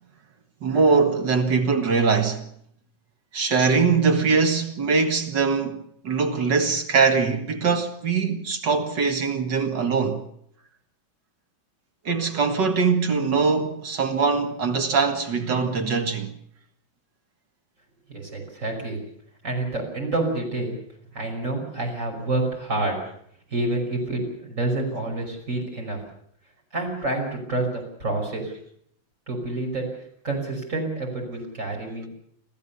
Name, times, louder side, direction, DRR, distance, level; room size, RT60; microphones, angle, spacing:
voice 1, 0.6-2.5 3.3-10.2 12.1-16.3, right 5 dB, 60° right, 2.5 m, -22 dB
voice 2, 18.1-19.0 19.4-20.8 21.1-23.0 23.5-26.0 26.7-28.5 29.3-29.8 30.2-32.1, right 2 dB, 35° right, 6.0 m, -28 dB
26.5 x 15.0 x 7.0 m
omnidirectional pair, 2.2 m